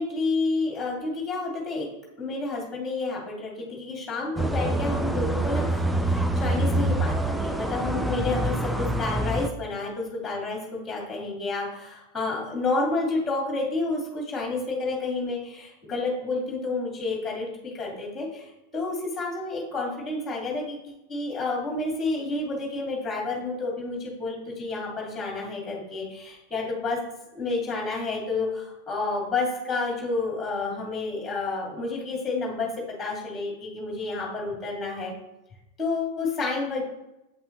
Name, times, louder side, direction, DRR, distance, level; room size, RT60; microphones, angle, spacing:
voice 1, 0.0-1.9 2.2-18.5 18.7-27.0 27.3-32.7 33.0-35.1 35.8-36.8, left 3 dB, 15° left, -2 dB, 2.4 m, -30 dB
sound 1, 4.4-9.5, right 1 dB, 5° right, 0.4 m, -26 dB
8.3 x 5.4 x 3.0 m, 0.92 s
figure-of-eight pair, 90°, 0 cm